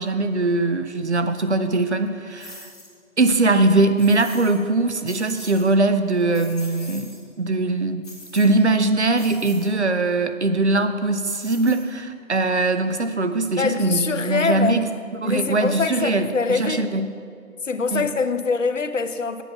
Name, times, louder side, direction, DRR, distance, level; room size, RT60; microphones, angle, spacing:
voice 1, 0.0-2.7 3.2-7.1 7.4-8.1 8.3-14.9 15.2-17.1 17.9-18.1, right 2 dB, 55° right, 9 dB, 0.6 m, -21 dB
sound 1, 2.4-2.9 4.0-4.6 4.9-5.7 6.1-7.2 8.0-8.7 9.1-9.7 11.2-12.1, left 1 dB, 25° left, 1.9 m, -42 dB
voice 2, 13.6-14.9 15.2-16.9 17.6-19.4, left 4 dB, 60° left, 9 dB, 0.7 m, -24 dB
8.0 x 8.0 x 5.8 m, 2.2 s
figure-of-eight pair, 175°, 42 cm